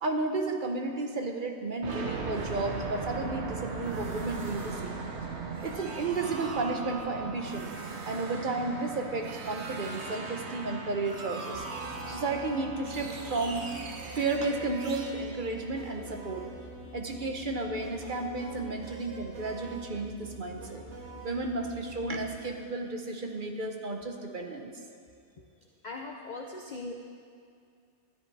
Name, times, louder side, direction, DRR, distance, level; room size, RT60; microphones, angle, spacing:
voice 1, 0.0-5.1 5.6-7.7 8.0-11.6 12.1-13.7 14.1-16.4 16.9-20.8 21.2-24.7, right 3 dB, 45° right, 3 dB, 1.0 m, -33 dB
sound 1, 1.8-16.5, right 4 dB, 70° right, 1.3 m, -39 dB
sound 2, 11.5-22.3, right 2 dB, 85° right, 1.9 m, -45 dB
voice 2, 25.8-26.9, left 3 dB, 45° left, 0 dB, 0.8 m, -40 dB
12.5 x 10.0 x 4.7 m, 2.3 s
omnidirectional pair, 1.2 m